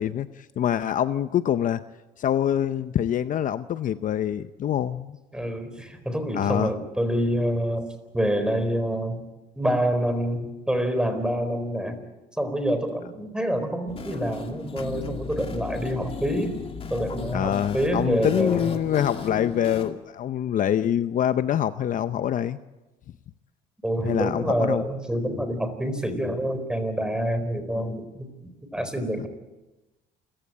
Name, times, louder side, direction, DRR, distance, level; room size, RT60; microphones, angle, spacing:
voice 1, 0.0-1.8 2.2-5.2 6.3-6.7 17.3-22.6 24.1-24.9, left 10 dB, 50° left, 12 dB, 0.7 m, -25 dB
voice 2, 5.3-7.9 8.1-9.2 9.6-12.0 12.4-16.6 16.9-18.7 23.8-29.3, equal, 5° right, 9 dB, 4.2 m, -27 dB
sound 1, 13.9-19.9, left 5 dB, 35° left, 2.5 m, -35 dB
28.5 x 15.5 x 8.7 m, 1.1 s
cardioid pair, 110°, 17 cm